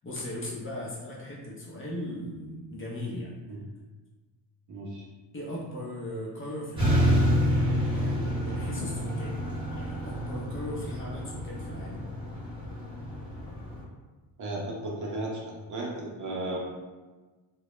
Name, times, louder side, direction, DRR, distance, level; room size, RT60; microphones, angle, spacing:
voice 1, 0.0-3.4 5.3-7.3 7.9-12.0, left 1 dB, 30° left, -5 dB, 0.6 m, -38 dB
voice 2, 4.7-5.1 14.4-16.6, right 2 dB, 40° right, -3 dB, 0.6 m, -35 dB
sound 1, 6.8-13.8, equal, 10° right, 0.9 m, -28 dB
2.2 x 2.0 x 2.9 m, 1.3 s
cardioid pair, 105°, 45 cm